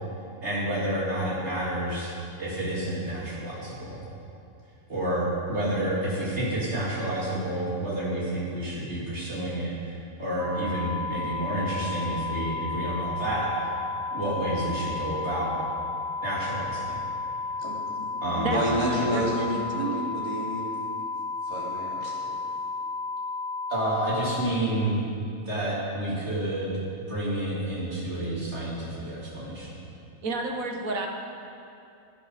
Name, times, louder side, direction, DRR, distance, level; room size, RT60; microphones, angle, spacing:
voice 1, 0.4-4.0 4.9-13.7 14.1-15.5 16.2-17.0 18.2-18.6 23.7-25.0 25.5-26.7 27.1-29.7, right 1 dB, 55° right, -7 dB, 3.7 m, -29 dB
sound 1, 10.4-24.4, left 3 dB, 50° left, 3.0 m, -33 dB
voice 2, 17.6-20.7 21.4-22.4, equal, 20° right, -6 dB, 3.0 m, -30 dB
voice 3, 18.4-20.3 30.2-31.1, right 2 dB, 80° right, 2 dB, 1.7 m, -31 dB
17.0 x 10.0 x 5.1 m, 2.6 s
omnidirectional pair, 1.4 m